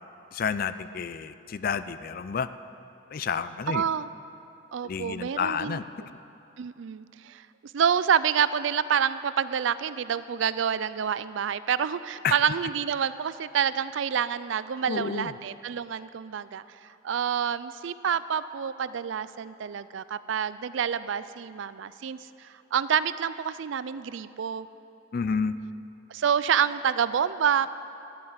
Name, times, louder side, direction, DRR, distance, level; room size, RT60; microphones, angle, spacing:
voice 1, 0.3-2.5 3.1-3.8 4.8-5.8 12.2-12.3 14.9-15.3 25.1-25.5, left 6 dB, 45° left, 13 dB, 0.4 m, -30 dB
voice 2, 3.7-4.1 4.7-5.8 6.6-7.5 7.7-24.7 26.1-27.7, right 7 dB, 70° right, 15 dB, 0.4 m, -28 dB
12.5 x 8.6 x 8.0 m, 2.8 s
head